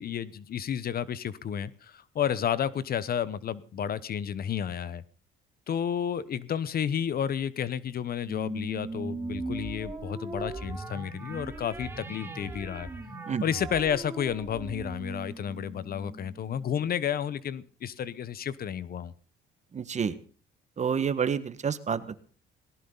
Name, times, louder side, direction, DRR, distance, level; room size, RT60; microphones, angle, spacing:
voice 1, 0.0-5.0 5.7-12.9 13.4-19.1, left 8 dB, 50° left, 18 dB, 1.0 m, -31 dB
sound 1, 8.3-17.0, right 2 dB, 10° right, 3.6 m, -39 dB
voice 2, 19.7-20.2 20.8-22.2, right 7 dB, 35° right, 13 dB, 1.6 m, -29 dB
18.5 x 17.5 x 4.0 m, 0.40 s
cardioid pair, 110°, 20 cm